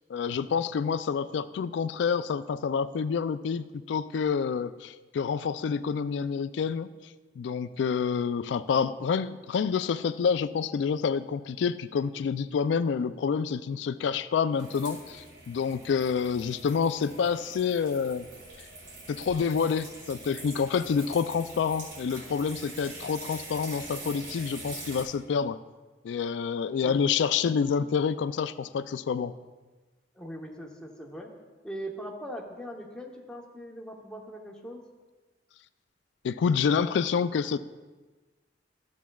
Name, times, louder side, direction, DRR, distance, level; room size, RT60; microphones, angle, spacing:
voice 1, 0.1-6.9 7.4-18.3 19.1-25.6 26.0-29.3 36.2-37.6, left 6 dB, 70° left, 14 dB, 0.3 m, -28 dB
sound 1, 14.5-25.0, right 2 dB, 85° right, 2.4 m, -44 dB
voice 2, 30.1-31.3 31.6-34.8, equal, 5° left, -1 dB, 0.9 m, -40 dB
12.5 x 7.2 x 2.3 m, 1.2 s
head